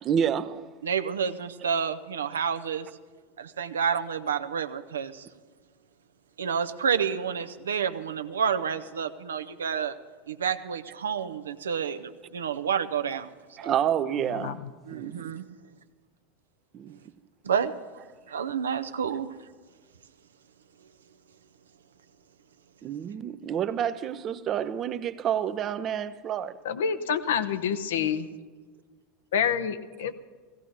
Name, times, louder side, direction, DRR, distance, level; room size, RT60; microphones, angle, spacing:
voice 1, 0.0-0.7 13.6-14.6 14.9-15.3 16.7-17.0 22.8-26.6, right 9 dB, 40° right, 0.6 m, -29 dB
voice 2, 0.8-2.9 3.4-5.3 6.4-10.0 10.3-13.3 13.6-13.7 14.9-15.5 17.4-17.7 18.3-19.4, right 7 dB, 75° right, 0.6 m, -29 dB
voice 3, 26.6-28.3 29.3-30.1, left 7 dB, 70° left, 0.7 m, -27 dB
16.0 x 16.0 x 4.0 m
figure-of-eight pair, 80°, 0 cm